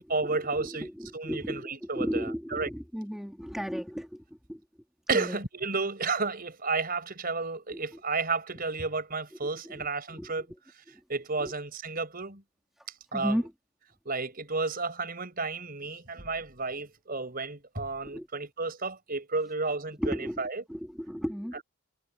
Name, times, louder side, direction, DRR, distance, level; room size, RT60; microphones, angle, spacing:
voice 1, 0.0-2.7 5.1-10.5 11.1-12.4 13.1-13.4 14.1-20.6, right 3 dB, 40° right, 5.2 m, -32 dB
voice 2, 0.6-4.6 5.1-5.4 7.7-8.0 9.6-10.3 11.4-11.5 12.8-12.9 13.1-13.5 18.0-18.3 20.0-20.4 20.7-21.6, equal, ahead, 2.7 m, -35 dB
head